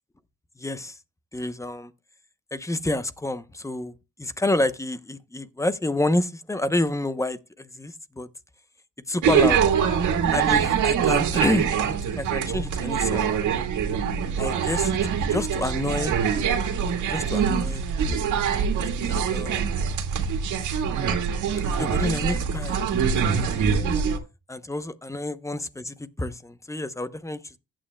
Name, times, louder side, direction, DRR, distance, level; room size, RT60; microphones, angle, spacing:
voice 1, 0.6-1.0 1.3-1.9 2.5-3.9 4.2-8.3 9.1-9.6 10.3-11.8 12.2-13.3 14.4-16.1 17.1-18.7 18.9-19.8 21.8-22.8 23.2-24.0 24.5-27.6, left 2 dB, 10° left, 0.8 m, -29 dB
sound 1, 9.2-24.2, right 7 dB, 75° right, 1.9 m, -24 dB
15.0 x 8.9 x 2.3 m
cardioid pair, 90°, 30 cm